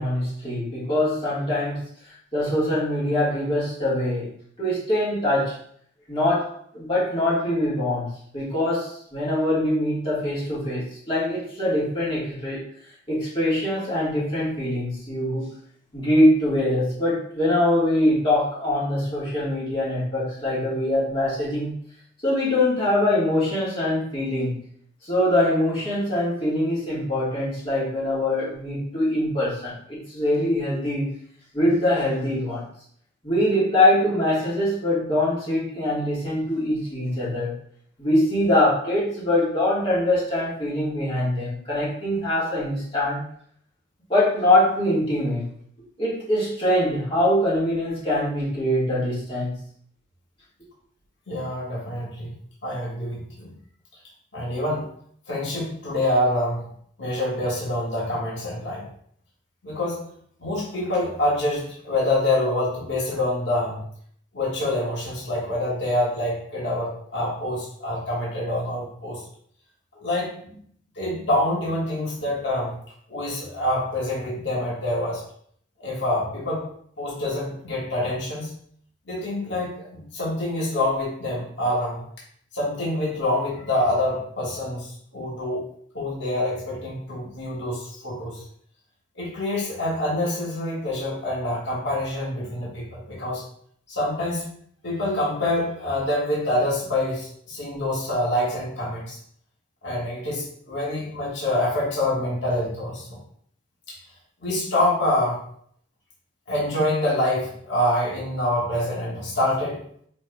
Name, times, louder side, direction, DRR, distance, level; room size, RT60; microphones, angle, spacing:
voice 1, 0.0-1.8 2.3-4.3 4.6-5.6 6.1-12.6 13.1-15.4 15.9-21.7 22.2-24.6 25.0-31.1 31.5-32.6 33.2-37.5 38.0-43.2 44.1-45.4 46.0-49.6, left 1 dB, 30° left, -8 dB, 1.6 m, -23 dB
voice 2, 51.3-52.3 52.6-53.5 54.3-54.9 55.3-56.6 57.0-58.8 59.6-60.0 60.4-63.8 64.3-69.2 70.0-70.3 71.0-72.7 73.1-75.2 75.8-76.7 77.0-78.5 79.1-82.0 82.5-85.6 85.9-88.4 89.1-93.4 93.9-94.4 94.8-99.2 99.8-103.1 103.9-104.0 104.4-105.4 106.5-109.8, left 1 dB, 60° left, -5 dB, 1.5 m, -26 dB
5.0 x 3.4 x 2.3 m, 0.63 s
head